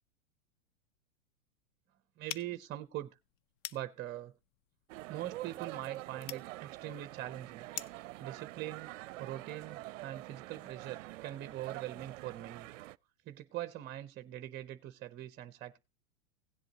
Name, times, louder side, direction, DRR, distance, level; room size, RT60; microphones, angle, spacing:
voice 1, 2.2-3.2 3.7-4.3 5.1-7.7 8.2-8.9 9.2-12.7 13.3-15.8, right 13 dB, 25° right, 0.6 m, -42 dB
sound 1, 2.3-8.1, left 11 dB, 45° left, 0.6 m, -48 dB
sound 2, 4.9-13.0, right 17 dB, 65° right, 0.5 m, -46 dB
17.0 x 7.8 x 2.8 m
hypercardioid pair, 120°, 41 cm